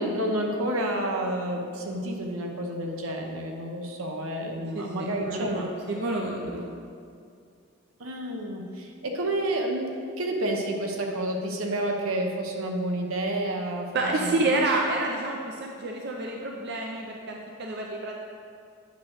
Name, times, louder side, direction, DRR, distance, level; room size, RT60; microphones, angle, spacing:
voice 1, 0.0-5.7 8.0-14.6, right 1 dB, 80° right, 2 dB, 0.8 m, -30 dB
voice 2, 4.7-6.6 13.9-18.2, right 2 dB, 50° right, 0 dB, 0.5 m, -29 dB
8.4 x 3.0 x 6.2 m, 2.3 s
head